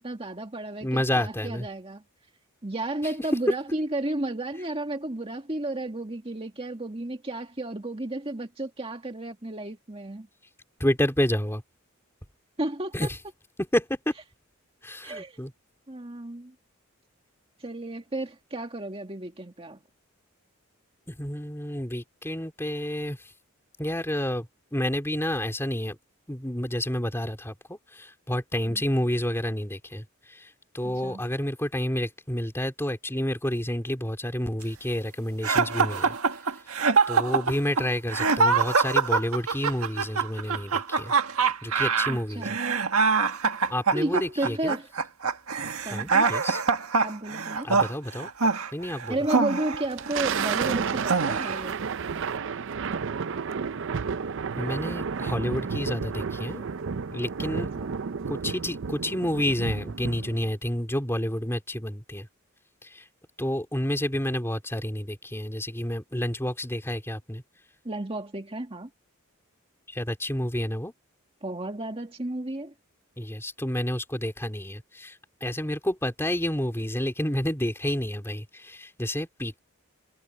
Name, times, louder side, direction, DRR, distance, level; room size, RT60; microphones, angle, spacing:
voice 1, 0.0-2.0 2.6-10.3 12.6-13.1 15.0-15.4 15.9-16.5 17.6-19.8 28.7-28.8 30.8-31.2 42.1-42.8 43.9-44.9 45.9-46.3 47.0-47.7 49.1-51.8 57.6-58.0 67.9-68.9 71.4-72.7, right 1 dB, 25° right, 1.9 m, -32 dB
voice 2, 0.8-1.7 10.8-11.6 12.9-13.2 13.6-14.1 14.8-15.5 21.1-23.3 23.8-26.0 26.3-36.2 37.1-41.1 41.6-42.6 43.7-44.8 45.9-46.6 47.6-48.3 48.7-49.2 54.5-56.7 57.1-57.7 58.3-62.3 62.8-63.0 63.4-67.4 69.9-70.9 73.2-79.6, left 1 dB, 10° left, 3.3 m, -29 dB
sound 1, 35.4-50.6 51.0-51.7, right 5 dB, 85° right, 1.6 m, -24 dB
Thunder, 49.7-60.5, right 6 dB, 60° right, 0.5 m, -31 dB
head